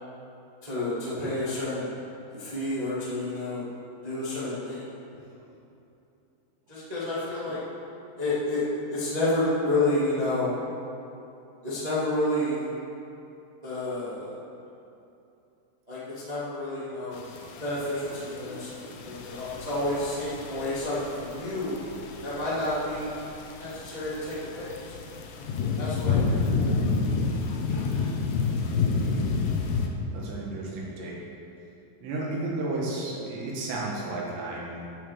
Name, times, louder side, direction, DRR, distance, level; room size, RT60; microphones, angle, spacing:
voice 1, 0.6-1.9 2.4-3.6 4.0-4.8 6.7-7.6 8.2-8.6 8.9-10.5 11.6-12.7 13.6-14.3 15.9-17.2 17.6-21.8 22.2-23.1 23.6-24.7 25.8-26.4 26.6-26.8 27.7-28.1, left 1 dB, 35° right, -10 dB, 0.6 m, -30 dB
sound 1, 17.1-29.9, left 4 dB, 75° left, 2.5 m, -30 dB
voice 2, 28.6-29.3 30.1-31.2 32.0-34.8, right 2 dB, 70° right, -4 dB, 3.7 m, -33 dB
10.5 x 6.4 x 6.8 m, 2.8 s
omnidirectional pair, 5.5 m